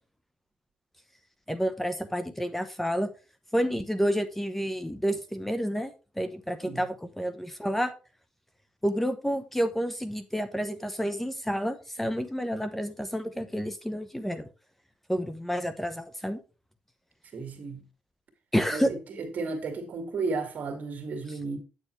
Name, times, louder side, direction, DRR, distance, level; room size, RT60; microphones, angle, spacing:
voice 1, 1.5-3.1 3.5-7.9 8.8-14.5 15.1-16.4 18.5-18.9 21.3-21.4, equal, 5° left, 0.9 m, -29 dB
voice 2, 17.3-17.8 18.7-21.6, right 4 dB, 60° right, 2.1 m, -33 dB
8.7 x 6.7 x 3.2 m
cardioid pair, 80°, 3 cm